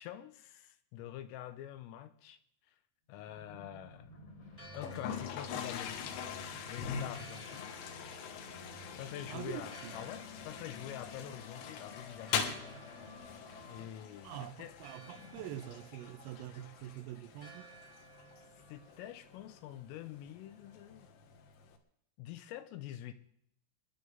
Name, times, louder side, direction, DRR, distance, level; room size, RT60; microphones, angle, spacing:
voice 1, 0.0-2.4 3.1-4.1 4.7-6.2 6.6-7.7 9.0-12.5 13.7-14.7 18.7-21.1 22.2-23.1, left 12 dB, 90° left, 3.5 m, -46 dB
sound 1, 3.2-13.9, left 2 dB, 45° left, 2.3 m, -52 dB
Church bell, 4.4-21.1, right 3 dB, 20° left, 0.3 m, -59 dB
Toilet flush, 4.7-21.8, left 7 dB, 70° left, 3.3 m, -43 dB
voice 2, 9.3-10.0 14.3-17.7, right 13 dB, 85° right, 3.4 m, -45 dB
28.5 x 10.5 x 3.9 m
omnidirectional pair, 5.9 m